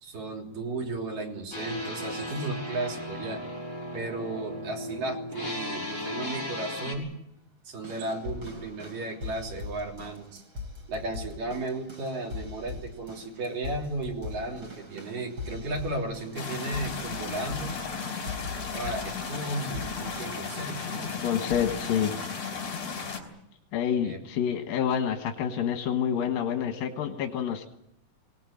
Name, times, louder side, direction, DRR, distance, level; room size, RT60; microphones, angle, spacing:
voice 1, 0.0-3.4 3.9-7.1 7.6-10.4 10.9-17.8 18.7-21.2 24.0-24.2, right 2 dB, 75° right, 0 dB, 5.0 m, -34 dB
sound 1, 1.5-6.9, left 1 dB, 20° left, 6.4 m, -36 dB
sound 2, 7.8-21.1 21.5-21.9 22.7-22.8, left 4 dB, 30° right, 5.1 m, -41 dB
sound 3, 16.4-23.2, left 5 dB, 60° left, 5.6 m, -35 dB
voice 2, 21.2-22.1 23.7-27.7, left 8 dB, 85° left, 4 dB, 3.2 m, -28 dB
24.0 x 18.5 x 8.8 m, 0.81 s
omnidirectional pair, 3.9 m